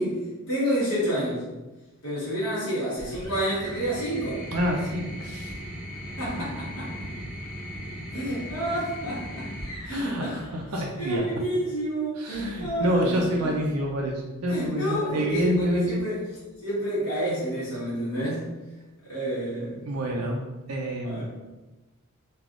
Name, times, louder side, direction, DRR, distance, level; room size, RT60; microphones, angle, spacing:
voice 1, 0.0-1.4 2.0-4.4 6.2-7.1 8.1-9.5 9.8-10.4 11.0-13.5 14.5-16.2 16.6-18.5 19.1-19.8 21.1-21.2, right 1 dB, 60° left, -9 dB, 1.1 m, -29 dB
sound 1, 3.0-11.4 12.6-13.2, equal, 20° left, 1.0 m, -38 dB
voice 2, 4.5-5.5 6.9-7.0 9.9-11.2 12.2-16.0 19.8-20.4 20.7-21.2, equal, 90° right, -1 dB, 0.5 m, -27 dB
3.3 x 2.3 x 2.4 m, 1.1 s
head